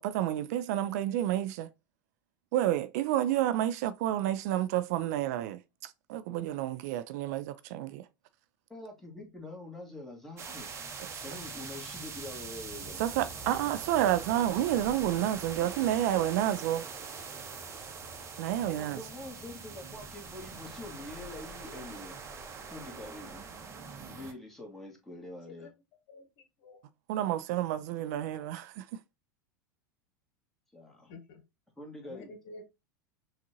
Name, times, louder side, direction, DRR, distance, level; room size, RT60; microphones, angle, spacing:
voice 1, 0.0-1.7 2.5-8.1 11.0-11.4 13.0-16.8 18.4-19.0 27.1-28.9, right 12 dB, 55° right, 0.4 m, -30 dB
voice 2, 8.7-10.7 11.2-13.1 18.6-23.5 24.0-25.7 30.7-31.1 31.8-32.3, left 2 dB, 5° left, 1.6 m, -45 dB
sound 1, 10.4-24.3, right 5 dB, 25° right, 0.9 m, -43 dB
voice 3, 25.3-25.7 26.1-26.8 31.1-31.4 32.0-32.6, left 3 dB, 50° left, 1.1 m, -50 dB
6.0 x 2.4 x 2.8 m
figure-of-eight pair, 85°, 11 cm